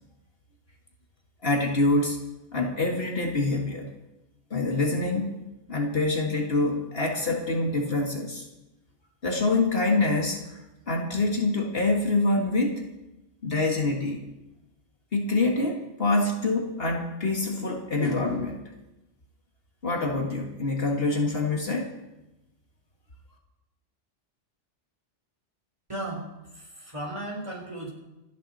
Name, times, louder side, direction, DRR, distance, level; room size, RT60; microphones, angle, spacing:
voice 1, 1.4-2.2 2.5-3.9 4.5-5.4 5.7-8.4 9.2-10.6 10.9-12.8 13.4-14.2 15.1-18.6 19.8-21.9, left 2 dB, 50° left, 1 dB, 2.1 m, -25 dB
voice 2, 25.9-27.9, right 1 dB, 25° right, -1 dB, 4.0 m, -36 dB
27.5 x 9.9 x 4.2 m, 0.96 s
omnidirectional pair, 1.3 m